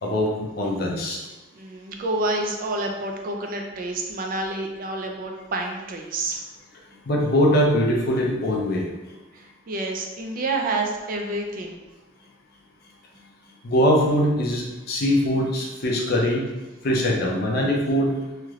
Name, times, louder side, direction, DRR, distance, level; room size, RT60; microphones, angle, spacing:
voice 1, 0.0-1.2 7.1-8.8 13.6-16.5 16.8-18.2, equal, 50° left, -1 dB, 0.5 m, -22 dB
voice 2, 1.5-6.4 9.3-11.8, right 2 dB, 45° right, 2 dB, 0.4 m, -28 dB
3.1 x 2.9 x 2.3 m, 1.1 s
head